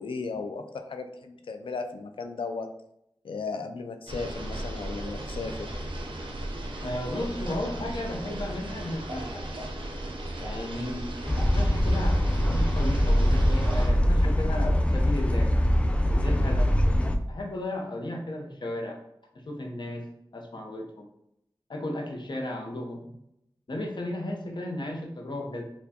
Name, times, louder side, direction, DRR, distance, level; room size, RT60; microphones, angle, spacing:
voice 1, 0.0-2.7 3.2-5.7 14.2-14.3, left 4 dB, 85° left, 7 dB, 0.3 m, -35 dB
sound 1, 4.1-13.9, right 1 dB, 85° right, 0.6 m, -36 dB
voice 2, 6.8-9.4 10.4-15.5 16.0-16.7 17.3-19.0 19.3-20.1 20.3-21.1 21.7-23.2 23.7-25.6, left 1 dB, 60° left, 1 dB, 0.7 m, -34 dB
sound 2, 11.3-17.2, equal, 15° left, 0.3 m, -23 dB
4.4 x 2.2 x 2.8 m, 0.79 s
wide cardioid pair, 50°, 9 cm